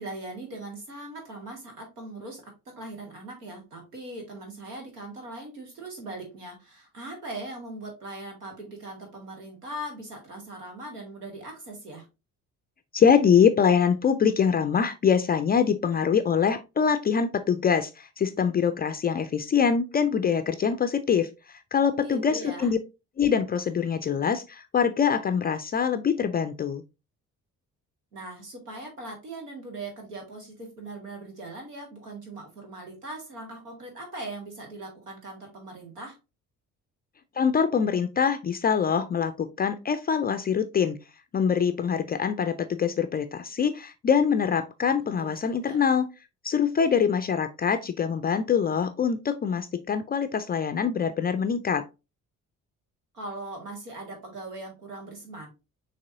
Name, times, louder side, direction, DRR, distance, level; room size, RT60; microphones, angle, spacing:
voice 1, 0.0-12.1 22.0-22.7 28.1-36.2 45.2-45.8 53.1-55.5, right 2 dB, 85° right, 1.2 m, -40 dB
voice 2, 12.9-22.8 23.2-26.8 37.4-41.0 41.3-46.1 46.4-51.9, left 7 dB, 25° left, 0.3 m, -24 dB
6.5 x 2.9 x 2.5 m
figure-of-eight pair, 40°, 45 cm